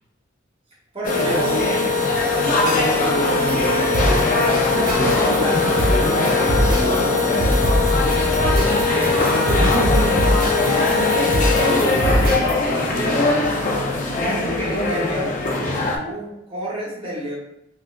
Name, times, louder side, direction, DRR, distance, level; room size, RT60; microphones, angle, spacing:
voice 1, 0.9-1.7 2.5-3.7 4.6-7.5 14.1-17.4, equal, 30° right, -4 dB, 1.1 m, -30 dB
sound 1, 1.0-16.0, left 3 dB, 45° left, 0.5 m, -20 dB
sound 2, 3.3-12.6, equal, 50° right, 0.9 m, -23 dB
voice 2, 9.0-10.3 10.6-13.4, right 1 dB, 70° right, 1 dB, 0.6 m, -28 dB
4.6 x 2.4 x 2.2 m, 0.82 s
head